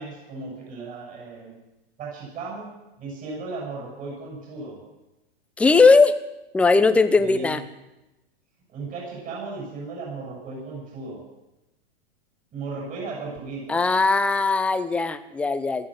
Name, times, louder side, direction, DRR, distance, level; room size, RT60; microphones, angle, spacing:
voice 1, 0.0-1.5 2.0-2.7 3.0-4.8 7.2-7.6 8.7-11.2 12.5-13.8, right 3 dB, 25° right, -3 dB, 6.9 m, -35 dB
voice 2, 5.6-6.2 6.5-7.6 13.7-15.9, left 4 dB, 5° left, 11 dB, 0.5 m, -19 dB
16.5 x 14.0 x 6.4 m, 0.97 s
hypercardioid pair, 145°, 32 cm